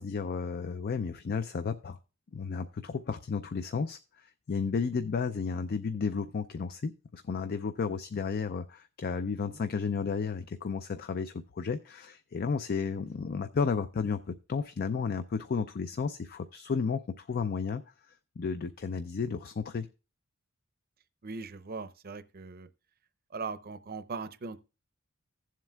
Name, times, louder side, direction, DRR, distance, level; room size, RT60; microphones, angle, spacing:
voice 1, 0.0-2.0 2.3-17.8 18.4-19.9, left 5 dB, 45° left, 0.4 m, -33 dB
voice 2, 21.2-22.7 23.3-24.6, right 4 dB, 45° right, 0.6 m, -39 dB
15.5 x 7.5 x 2.3 m
head